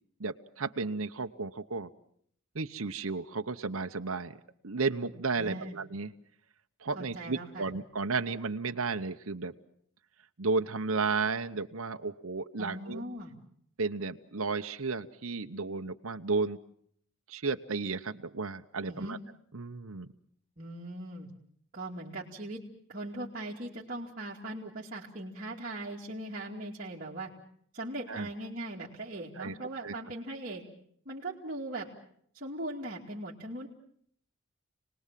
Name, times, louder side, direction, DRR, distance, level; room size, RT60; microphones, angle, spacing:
voice 1, 0.2-1.9 2.5-4.4 4.6-6.1 6.8-9.5 10.4-13.0 13.8-16.6 17.3-19.2 19.5-20.1 28.1-28.3 29.4-29.6 29.8-29.9, right 4 dB, 70° right, 6 dB, 0.9 m, -33 dB
voice 2, 5.4-5.8 6.9-7.7 12.6-13.3 18.9-19.2 20.6-21.3 21.7-22.6 22.9-27.3 27.7-30.6 31.1-31.9 32.3-33.7, right 1 dB, 40° right, -6 dB, 2.6 m, -39 dB
29.5 x 19.5 x 7.6 m, 0.67 s
head